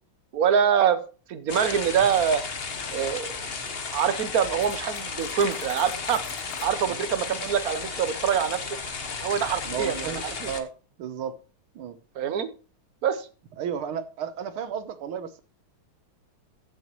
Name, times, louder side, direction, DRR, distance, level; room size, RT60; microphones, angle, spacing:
voice 1, 0.3-1.0 1.3-2.4 2.9-3.4 3.9-6.2 6.6-8.8 9.2-10.1 10.4-10.5 12.2-12.5 13.0-13.3, right 8 dB, 60° right, 1.1 m, -24 dB
sound 1, 1.5-10.6, left 5 dB, 40° left, 1.0 m, -34 dB
Cutlery silverware, 4.6-6.8, left 12 dB, 80° left, 1.5 m, -44 dB
voice 2, 9.7-10.7 11.0-11.4 11.7-12.0 13.6-15.4, right 7 dB, 85° right, 1.8 m, -33 dB
14.5 x 7.2 x 3.0 m
omnidirectional pair, 2.3 m